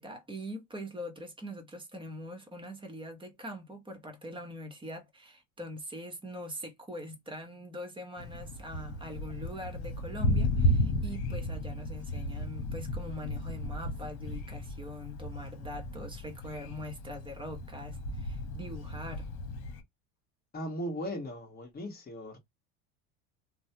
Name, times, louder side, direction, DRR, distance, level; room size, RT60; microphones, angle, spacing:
voice 1, 0.0-19.3, equal, 10° right, 0.9 m, -43 dB
Thunder, 8.2-19.8, left 1 dB, 65° left, 1.1 m, -34 dB
voice 2, 20.5-22.4, equal, 25° left, 1.4 m, -37 dB
3.1 x 2.2 x 2.8 m
supercardioid pair, 120°, 40 cm